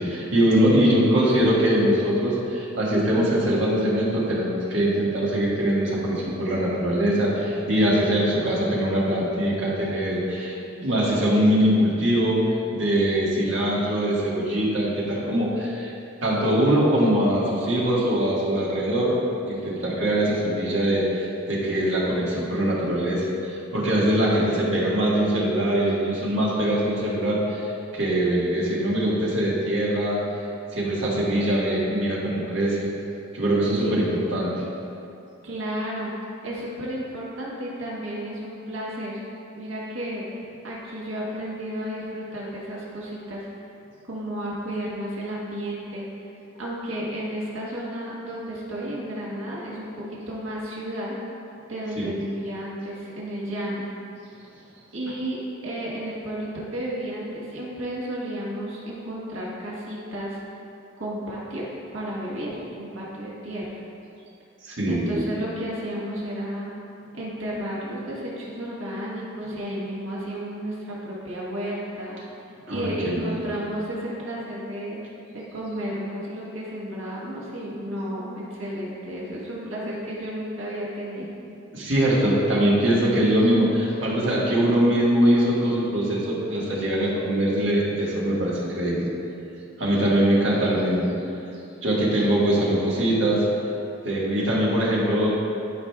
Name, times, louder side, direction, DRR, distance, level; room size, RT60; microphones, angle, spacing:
voice 1, 0.0-12.5 12.7-15.9 16.2-19.2 19.5-30.2 30.7-32.9 33.3-34.6 52.0-52.1 64.6-65.3 72.7-73.4 81.7-89.1 89.8-91.1 91.8-93.5 94.0-95.3, right 1 dB, 65° right, -6 dB, 1.7 m, -22 dB
voice 2, 33.8-34.3 35.4-36.1 36.4-39.2 39.6-40.2 40.6-43.5 44.0-46.0 46.6-51.1 51.7-53.8 54.9-60.4 61.0-61.6 61.9-63.7 64.9-66.7 67.1-72.2 72.7-75.0 75.3-81.3, equal, 85° right, -5 dB, 1.5 m, -32 dB
12.5 x 5.0 x 2.4 m, 2.7 s
head